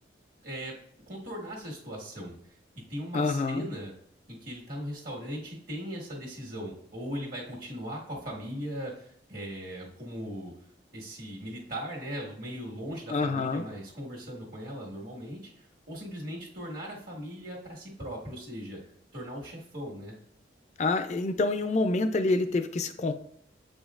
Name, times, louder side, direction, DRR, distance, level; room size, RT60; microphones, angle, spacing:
voice 1, 0.4-0.7 1.1-2.3 2.9-3.9 4.3-10.5 10.9-18.8 19.1-20.1, equal, 50° right, -2 dB, 1.7 m, -39 dB
voice 2, 3.1-3.7 13.1-13.6 20.8-23.1, left 3 dB, 40° left, 9 dB, 0.4 m, -27 dB
7.7 x 5.1 x 2.5 m, 0.65 s
head